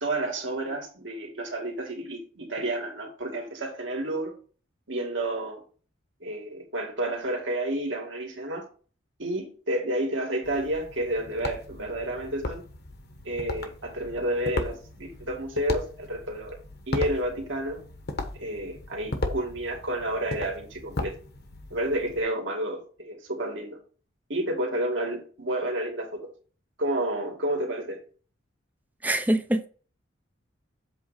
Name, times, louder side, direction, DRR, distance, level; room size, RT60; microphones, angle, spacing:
voice 1, 0.0-4.3 4.9-5.6 6.2-8.6 9.2-12.6 13.2-16.6 16.9-17.8 18.3-21.1 21.7-23.8 24.3-26.3 26.8-28.0, right 1 dB, 65° right, 2.3 m, -30 dB
sound 1, 10.4-22.2, left 2 dB, 55° left, 1.1 m, -36 dB
voice 2, 29.0-29.7, right 1 dB, 10° right, 0.5 m, -24 dB
7.9 x 3.3 x 5.7 m
head